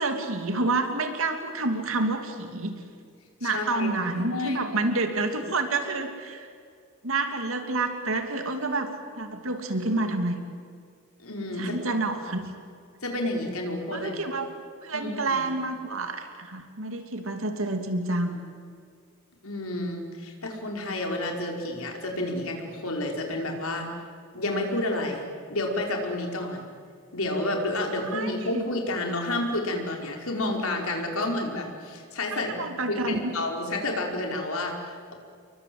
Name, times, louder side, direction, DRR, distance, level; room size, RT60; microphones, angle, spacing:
voice 1, 0.0-2.7 3.4-6.5 7.0-8.9 9.2-10.4 11.6-12.5 13.9-14.5 14.8-18.5 28.1-28.6 32.3-33.4, right 2 dB, 70° right, 6 dB, 2.7 m, -28 dB
voice 2, 3.4-4.8 11.2-11.8 13.0-14.1 14.9-15.4 19.4-23.9 24.3-25.2 25.5-26.6 27.1-35.1, left 2 dB, 80° left, 1 dB, 5.0 m, -30 dB
29.5 x 23.5 x 7.8 m, 2.2 s
head